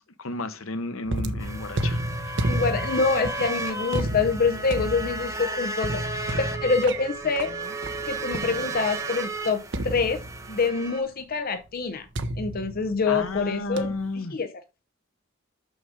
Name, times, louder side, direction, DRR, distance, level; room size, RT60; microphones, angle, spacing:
voice 1, 0.2-2.4 6.3-6.4 13.1-14.4, left 2 dB, 75° left, 1.0 m, -33 dB
sound 1, 1.1-9.0 9.7-10.7 12.1-13.4 13.8-14.1, right 1 dB, 60° right, 1.0 m, -32 dB
sound 2, 1.4-11.0, right 2 dB, 15° right, 1.2 m, -34 dB
voice 2, 2.4-6.0 6.4-7.5 8.0-10.2 10.5-12.1 12.4-14.6, left 4 dB, 45° left, 0.6 m, -26 dB
6.5 x 6.1 x 4.9 m
head